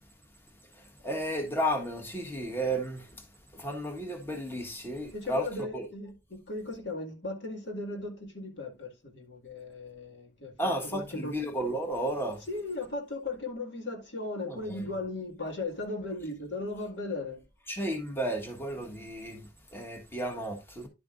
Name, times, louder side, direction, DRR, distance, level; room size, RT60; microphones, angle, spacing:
voice 1, 0.7-3.3 3.5-5.9 10.6-12.4 14.4-14.8 17.7-20.9, right 1 dB, 15° left, 1.4 m, -33 dB
voice 2, 5.1-11.4 12.5-17.4, left 2 dB, 85° left, 2.1 m, -37 dB
11.0 x 7.0 x 2.5 m
head